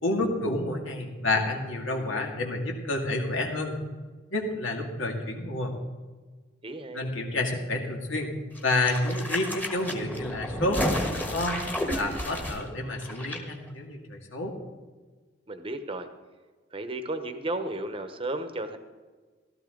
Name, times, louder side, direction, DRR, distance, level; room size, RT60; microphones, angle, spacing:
voice 1, 0.0-3.8 4.3-5.7 6.9-8.3 8.6-10.8 11.3-11.6 11.9-14.6, left 2 dB, 85° left, 1 dB, 2.2 m, -29 dB
voice 2, 6.6-7.1 15.5-16.1 16.7-18.8, right 2 dB, 25° right, 8 dB, 1.0 m, -33 dB
sound 1, 8.5-13.4 13.7-13.8, left 1 dB, 10° left, 1.3 m, -32 dB
15.5 x 13.0 x 3.9 m, 1.4 s
head